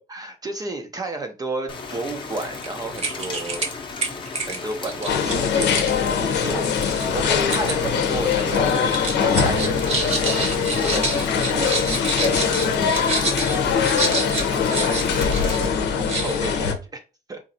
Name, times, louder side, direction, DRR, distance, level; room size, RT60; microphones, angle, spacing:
voice 1, 0.1-3.7 4.5-5.8 6.3-6.7 7.1-13.7 14.5-17.0 17.3-17.4, right 2 dB, 20° right, 0.5 m, -32 dB
Rain, 1.7-15.7, left 4 dB, 30° left, 0.7 m, -35 dB
sound 1, 2.6-2.7 3.0-3.7 4.0-7.8 8.1-8.6 8.9-15.6 15.9-16.5, right 3 dB, 40° right, 0.9 m, -28 dB
sound 2, 5.1-16.7, left 6 dB, 85° left, 0.7 m, -22 dB
4.0 x 2.5 x 2.7 m
cardioid pair, 165°, 17 cm